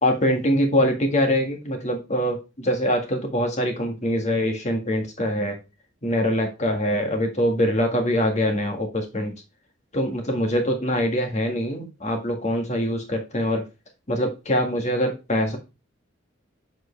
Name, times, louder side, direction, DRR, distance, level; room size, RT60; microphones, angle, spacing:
voice 1, 0.0-5.6 6.0-9.3 9.9-13.6 14.1-15.6, equal, 35° left, 4 dB, 1.7 m, -23 dB
7.4 x 5.3 x 3.3 m, 0.27 s
head